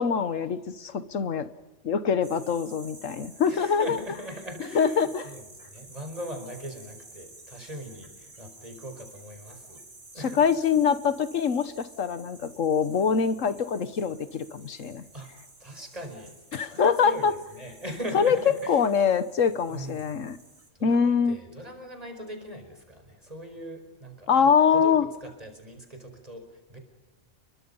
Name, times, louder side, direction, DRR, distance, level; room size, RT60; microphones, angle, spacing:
voice 1, 0.0-1.5 1.8-4.0 4.7-5.2 10.2-15.0 16.5-17.3 18.1-18.4 18.7-20.4 20.8-21.4 24.3-25.1, left 6 dB, 90° left, 13 dB, 1.6 m, -24 dB
sound 1, 2.2-20.7, right 2 dB, 55° right, 3.7 m, -51 dB
voice 2, 3.5-9.8 10.1-10.4 15.1-15.3 15.6-18.8 19.7-20.0 20.8-25.0 25.2-26.4 26.7-26.8, right 1 dB, 30° right, 5 dB, 5.1 m, -40 dB
29.5 x 23.0 x 5.5 m, 1.1 s
omnidirectional pair, 1.3 m